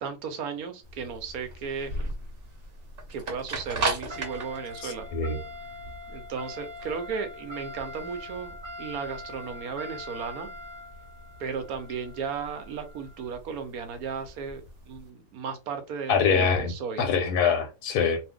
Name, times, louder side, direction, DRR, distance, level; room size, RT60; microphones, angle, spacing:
voice 1, 0.0-1.9 3.1-5.1 6.1-10.5 11.4-17.0, right 6 dB, 70° right, 1.0 m, -35 dB
sound 1, 0.8-15.0, right 1 dB, 45° right, 0.8 m, -37 dB
voice 2, 4.8-5.4 16.1-16.7 17.0-18.2, left 6 dB, 75° left, 1.1 m, -24 dB
2.6 x 2.4 x 3.5 m
omnidirectional pair, 1.8 m